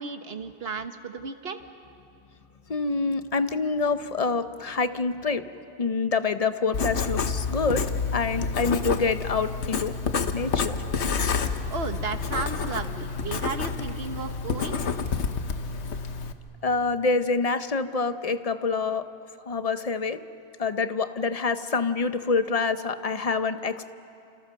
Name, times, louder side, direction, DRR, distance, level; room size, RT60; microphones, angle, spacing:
voice 1, 0.0-1.6 11.7-14.8, right 4 dB, 60° right, 1.4 m, -34 dB
voice 2, 2.7-5.5 5.8-9.9 10.3-10.8 16.6-19.1 19.5-20.2 20.6-23.9, left 4 dB, 35° left, 0.8 m, -26 dB
Writing, 6.7-16.3, left 5 dB, 80° left, 1.3 m, -29 dB
29.5 x 27.0 x 6.4 m
omnidirectional pair, 1.1 m